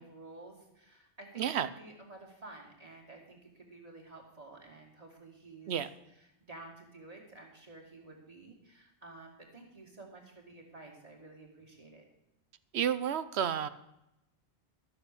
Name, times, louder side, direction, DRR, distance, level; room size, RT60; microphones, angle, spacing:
voice 1, 0.0-5.8 6.2-12.0, right 2 dB, 35° right, 0 dB, 2.7 m, -52 dB
voice 2, 1.4-1.7 5.7-5.9 12.7-13.7, right 9 dB, 75° right, 14 dB, 1.0 m, -31 dB
13.0 x 6.9 x 6.8 m, 0.86 s
omnidirectional pair, 1.1 m